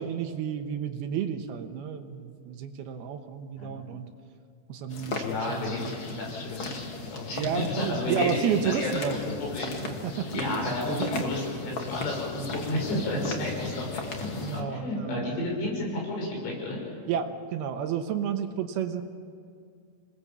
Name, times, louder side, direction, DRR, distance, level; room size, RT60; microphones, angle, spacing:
voice 1, 0.0-4.1 4.7-6.3 7.3-9.2 9.8-11.1 13.1-13.5 14.4-15.4 17.1-19.0, right 8 dB, 70° right, 7 dB, 2.5 m, -32 dB
sound 1, 4.9-14.6, left 4 dB, 60° left, 1.3 m, -37 dB
voice 2, 5.0-8.9 9.3-9.7 10.3-13.9 14.2-16.9, left 2 dB, 90° left, -1 dB, 8.6 m, -32 dB
26.5 x 20.0 x 7.3 m, 2.3 s
omnidirectional pair, 5.4 m